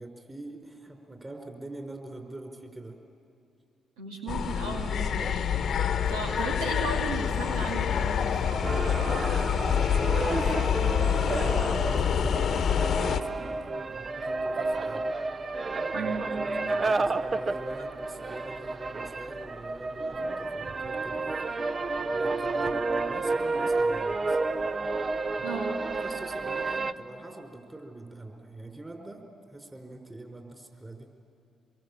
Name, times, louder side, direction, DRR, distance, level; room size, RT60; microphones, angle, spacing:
voice 1, 0.0-3.0 9.6-15.1 15.9-21.2 22.1-24.4 25.4-25.7 26.0-29.2 29.5-31.1, right 2 dB, 20° right, 3 dB, 5.1 m, -43 dB
voice 2, 4.0-8.7 15.9-16.3 25.4-25.7, right 3 dB, 90° right, -1 dB, 2.5 m, -36 dB
sound 1, 4.3-13.2, left 8 dB, 65° left, 1.0 m, -27 dB
sound 2, 8.6-26.9, right 3 dB, 40° right, 0.9 m, -31 dB
25.0 x 22.5 x 8.7 m, 2.6 s
hypercardioid pair, 45°, 0 cm